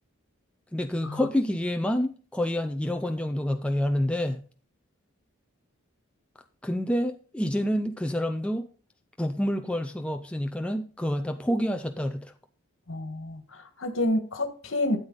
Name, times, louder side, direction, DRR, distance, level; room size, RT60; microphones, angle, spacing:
voice 1, 0.7-4.4 6.6-8.7 9.2-12.2, equal, 5° left, 0.5 m, -28 dB
voice 2, 12.9-15.0, left 1 dB, 65° left, 1.6 m, -29 dB
12.5 x 8.0 x 4.0 m
head